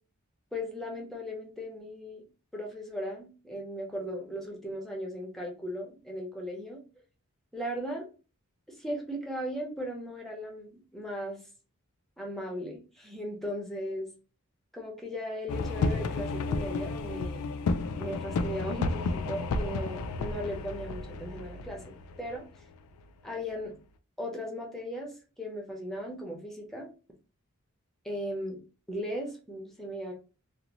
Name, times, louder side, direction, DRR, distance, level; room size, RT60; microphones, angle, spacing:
voice 1, 0.5-2.2 2.5-6.8 7.5-8.1 8.7-11.4 12.2-14.1 14.7-17.4 18.0-21.8 22.2-22.4 23.2-23.7 24.2-26.9 28.0-28.6 28.9-30.1, equal, ahead, -1 dB, 0.6 m, -37 dB
sound 1, 15.5-23.0, left 3 dB, 85° left, 0.3 m, -32 dB
2.5 x 2.0 x 2.9 m, 0.34 s
head